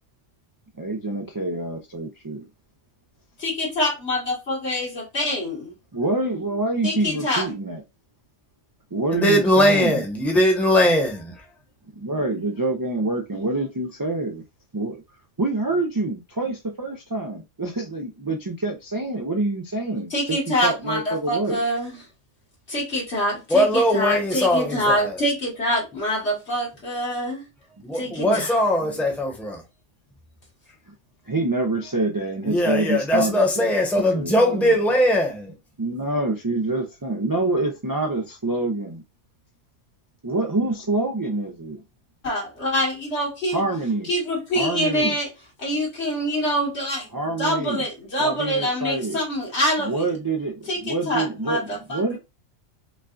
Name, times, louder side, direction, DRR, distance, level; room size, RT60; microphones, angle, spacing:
voice 1, 0.8-2.5 5.9-7.8 8.9-10.1 12.0-14.4 14.7-15.0 15.4-21.6 27.8-28.4 28.8-29.1 31.3-34.8 35.8-39.0 40.2-41.8 43.5-44.1 44.5-45.1 47.1-47.9 48.2-49.2 49.8-52.2, right 2 dB, 30° right, 0.3 m, -26 dB
voice 2, 3.4-5.7 6.8-7.5 20.1-21.9 22.7-27.4 27.9-28.6 42.2-43.6 44.1-45.3 45.6-47.0 47.4-49.9 50.7-52.2, equal, 65° left, 2.0 m, -25 dB
voice 3, 9.2-11.3 23.5-25.1 27.8-29.6 32.4-35.5, equal, ahead, 1.0 m, -20 dB
5.3 x 2.4 x 2.4 m
omnidirectional pair, 1.2 m